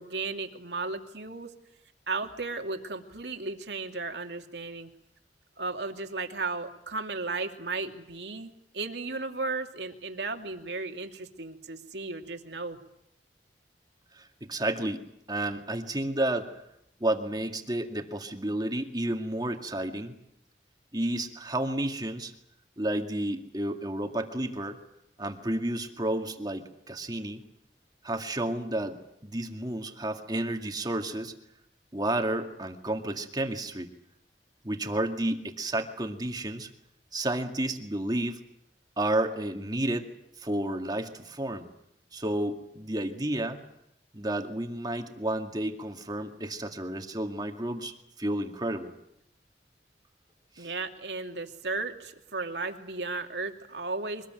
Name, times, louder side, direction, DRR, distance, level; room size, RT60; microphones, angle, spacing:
voice 1, 0.0-1.5 2.1-4.9 5.6-12.8 50.6-54.3, right 3 dB, 75° right, 4 dB, 2.6 m, -35 dB
voice 2, 14.1-16.6 17.0-20.2 20.9-22.3 22.8-24.8 25.2-27.4 28.0-29.0 29.2-31.3 31.9-33.9 34.6-36.7 37.1-38.4 39.0-40.1 40.4-41.7 42.1-43.6 44.1-47.9 48.2-48.9 50.6-50.7, right 1 dB, 25° right, 4 dB, 2.2 m, -31 dB
24.5 x 20.0 x 9.2 m, 0.78 s
head